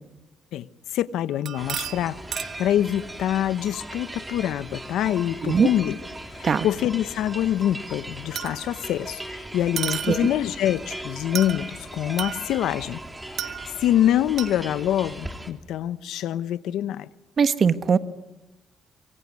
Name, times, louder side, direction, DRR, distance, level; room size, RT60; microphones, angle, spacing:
voice 1, 0.5-6.0 6.3-13.0 13.4-17.1, left 11 dB, 85° left, 0.9 m, -25 dB
sound 1, 1.3-2.7 6.1-6.2 8.4-8.9 9.8-10.5 11.4-11.7 12.2-12.8 13.4-14.0 14.4-14.6, right 9 dB, 65° right, 1.5 m, -33 dB
sound 2, 1.6-15.5, right 1 dB, 10° right, 3.1 m, -38 dB
voice 2, 17.4-18.0, right 6 dB, 45° right, 1.4 m, -20 dB
25.5 x 24.0 x 9.7 m
cardioid pair, 90°, 0 cm